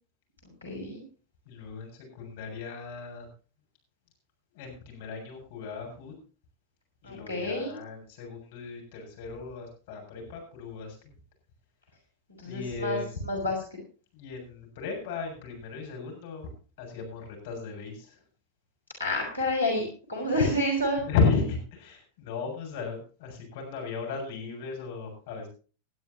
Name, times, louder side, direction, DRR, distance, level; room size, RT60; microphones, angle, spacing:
voice 1, 0.6-1.0 7.0-7.8 12.4-13.6 19.0-21.1, left 1 dB, 80° left, -1 dB, 5.3 m, -29 dB
voice 2, 1.5-3.3 4.5-6.1 7.0-11.0 12.5-13.3 14.1-18.2 21.1-25.5, left 4 dB, 50° left, 1 dB, 7.2 m, -34 dB
20.0 x 12.5 x 2.9 m, 0.37 s
figure-of-eight pair, 90°, 0 cm